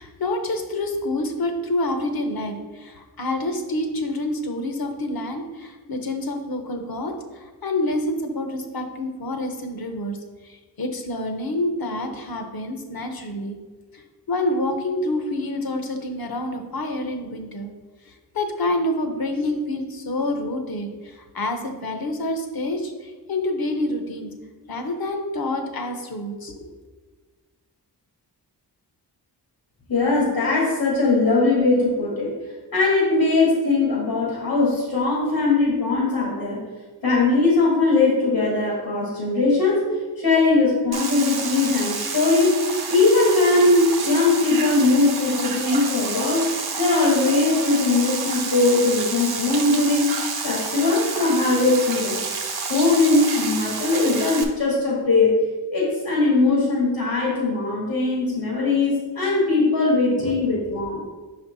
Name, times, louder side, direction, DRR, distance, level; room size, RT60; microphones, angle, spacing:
voice 1, 0.0-10.2 10.4-13.6 13.9-14.0 14.3-17.7 18.1-24.3 24.7-26.6 60.2-60.3, left 1 dB, 55° left, 5 dB, 0.9 m, -27 dB
voice 2, 29.9-32.3 32.7-36.6 37.0-39.8 40.2-42.6 42.9-46.4 46.8-50.1 50.4-52.2 52.7-55.4 55.7-61.0, left 3 dB, 80° left, -5 dB, 1.8 m, -20 dB
sound 1, 40.9-54.4, right 4 dB, 60° right, 0.9 m, -29 dB
5.4 x 4.4 x 4.0 m, 1.3 s
wide cardioid pair, 65°, 43 cm